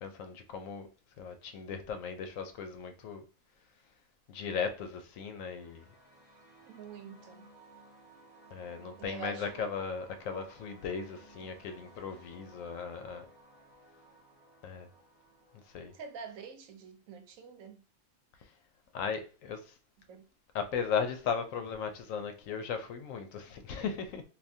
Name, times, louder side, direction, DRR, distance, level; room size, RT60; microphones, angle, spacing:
voice 1, 0.0-0.9 1.2-3.2 4.3-5.9 8.5-13.3 14.6-14.9 15.7-15.9 18.9-19.7 20.5-24.2, left 6 dB, 75° left, 1.0 m, -37 dB
sound 1, 5.1-16.2, right 2 dB, 10° left, 0.9 m, -58 dB
voice 2, 6.7-7.5 9.0-9.7 15.9-17.8 20.1-20.2, right 5 dB, 85° right, 1.1 m, -46 dB
3.4 x 2.6 x 2.6 m
omnidirectional pair, 1.4 m